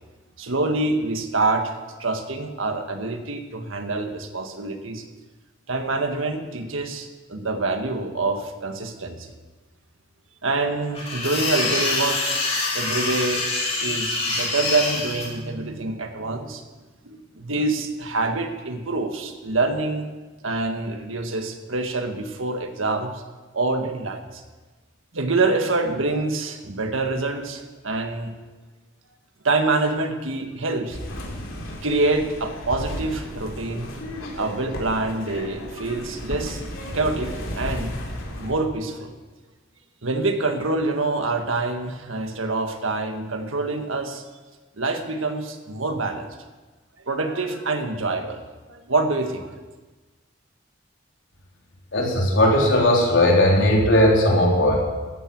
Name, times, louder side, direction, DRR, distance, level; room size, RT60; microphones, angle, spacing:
voice 1, 0.4-5.0 5.7-9.3 10.4-12.4 12.7-13.5 13.8-16.6 17.0-20.1 20.4-23.2 23.5-24.4 25.1-28.3 29.4-31.0 31.8-33.9 34.3-36.6 36.9-38.0 38.4-39.1 40.0-44.2 44.8-46.3 47.1-48.4 48.7-49.5, right 3 dB, 85° right, 6 dB, 1.6 m, -26 dB
sound 1, 10.9-15.3, left 3 dB, 30° left, 3.4 m, -25 dB
sound 2, 30.9-38.5, left 1 dB, 90° left, 3.1 m, -34 dB
voice 2, 51.9-54.8, left 1 dB, 70° left, -1 dB, 3.7 m, -17 dB
13.5 x 10.5 x 7.8 m, 1.3 s
head